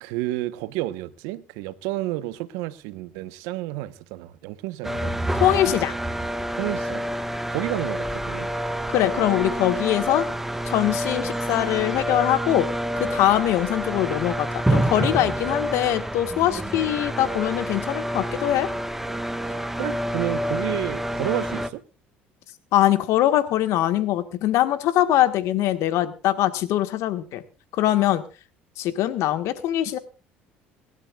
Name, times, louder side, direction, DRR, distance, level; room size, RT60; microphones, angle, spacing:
voice 1, 0.0-5.1 6.6-7.1 7.5-8.5 19.5-21.8, right 16 dB, 75° right, 1.0 m, -31 dB
sound 1, 4.8-21.7, right 1 dB, 5° right, 1.3 m, -28 dB
voice 2, 5.3-5.9 8.9-10.3 10.6-12.7 13.0-18.7 22.7-27.4 27.8-28.2 28.8-30.0, left 13 dB, 65° left, 1.5 m, -22 dB
25.5 x 12.0 x 2.4 m
hypercardioid pair, 70°, 5 cm